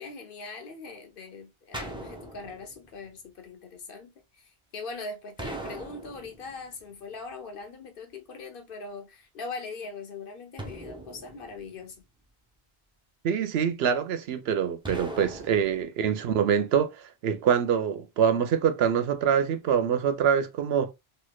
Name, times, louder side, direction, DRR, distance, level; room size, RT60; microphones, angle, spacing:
voice 1, 0.0-12.0, left 4 dB, 60° left, 0.9 m, -41 dB
sound 1, 1.7-2.9 5.4-6.7 10.6-12.0 14.8-15.8, right 1 dB, 5° right, 0.4 m, -39 dB
voice 2, 13.2-20.9, right 7 dB, 80° right, 0.8 m, -25 dB
3.1 x 2.8 x 2.3 m
omnidirectional pair, 1.1 m